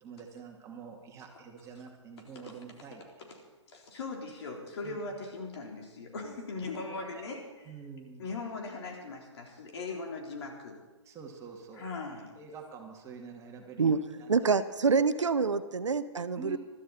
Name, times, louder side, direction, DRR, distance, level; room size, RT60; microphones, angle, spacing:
voice 1, 0.0-3.0 4.8-5.1 6.9-7.2 7.6-8.2 11.0-11.9 12.4-14.5 16.4-16.6, right 5 dB, 20° right, 1 dB, 2.4 m, -47 dB
voice 2, 3.7-7.7 8.2-10.7 11.7-12.3, left 3 dB, 60° left, 0 dB, 3.9 m, -39 dB
voice 3, 14.3-16.6, right 5 dB, 85° right, 14 dB, 0.8 m, -26 dB
21.5 x 13.0 x 4.3 m, 1.2 s
figure-of-eight pair, 125°, 15 cm